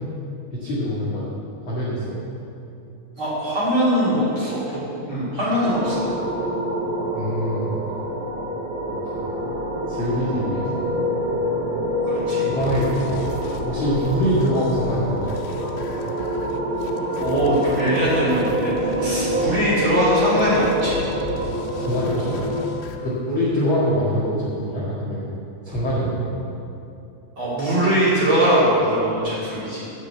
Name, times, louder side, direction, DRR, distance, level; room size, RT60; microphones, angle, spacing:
voice 1, 0.5-1.3 1.6-2.2 7.1-7.7 8.8-9.3 9.9-10.9 12.5-13.3 13.6-15.7 21.8-22.4 23.0-25.3 25.6-26.4, equal, 60° left, -8 dB, 1.3 m, -24 dB
voice 2, 3.2-6.0 12.1-12.5 17.2-18.7 19.0-21.0 23.0-23.1 27.4-29.8, right 1 dB, 30° right, -9 dB, 3.0 m, -21 dB
sound 1, 5.6-22.6, equal, 65° right, 2.0 m, -26 dB
sound 2, 12.6-23.0, left 5 dB, 90° left, 3.3 m, -37 dB
10.0 x 7.9 x 8.1 m, 2.8 s
omnidirectional pair, 5.6 m